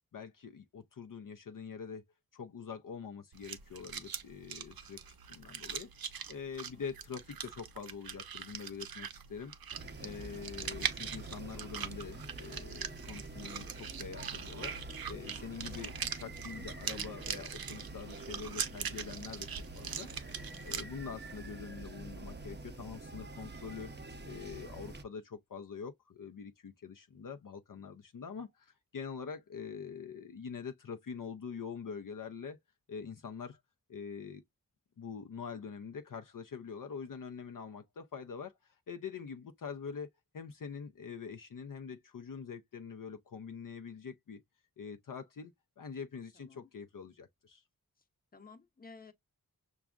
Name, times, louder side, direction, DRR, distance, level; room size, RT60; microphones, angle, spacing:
voice 1, 0.0-2.0 2.3-9.5 10.0-14.7 15.1-19.5 19.8-23.9 24.2-32.6 32.9-33.6 33.9-34.4 35.0-40.1 40.3-44.4 44.8-47.6, left 6 dB, 60° left, 0.5 m, -45 dB
sound 1, 3.3-20.8, right 7 dB, 75° right, 0.6 m, -42 dB
sound 2, 9.7-25.0, right 2 dB, 30° right, 0.6 m, -46 dB
voice 2, 20.3-20.7 21.0-21.1 46.4-46.7 48.3-49.1, left 4 dB, 25° left, 0.7 m, -55 dB
6.0 x 2.3 x 2.3 m
wide cardioid pair, 60°, 36 cm